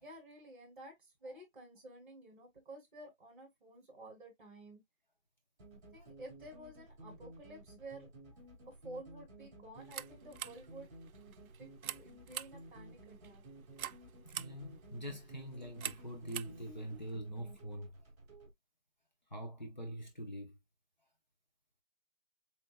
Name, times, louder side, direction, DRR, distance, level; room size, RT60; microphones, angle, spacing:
voice 1, 0.0-4.8 5.9-8.1 8.6-10.9 11.6-13.4, right 1 dB, 35° right, 3.3 m, -52 dB
sound 1, 5.6-18.5, right 1 dB, 15° right, 2.8 m, -55 dB
sound 2, 9.8-17.2, right 10 dB, 90° right, 0.5 m, -48 dB
voice 2, 14.2-17.9 19.3-20.5, equal, 35° left, 0.9 m, -44 dB
7.7 x 2.8 x 2.3 m
hypercardioid pair, 180°, 41 cm